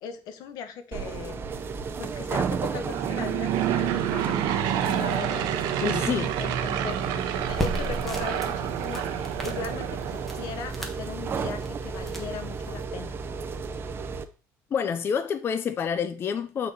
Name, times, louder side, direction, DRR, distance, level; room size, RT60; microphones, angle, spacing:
voice 1, 0.0-1.4 2.0-13.1, left 6 dB, 75° left, 0.9 m, -38 dB
sound 1, 0.9-14.2, right 5 dB, 35° right, 0.6 m, -34 dB
Aircraft / Engine, 2.7-10.7, right 10 dB, 80° right, 0.8 m, -29 dB
voice 2, 5.8-6.3 14.7-16.7, left 7 dB, 35° left, 0.5 m, -28 dB
sound 2, 7.3-12.8, right 1 dB, 5° left, 1.4 m, -37 dB
7.9 x 4.2 x 4.0 m
cardioid pair, 130°, 7 cm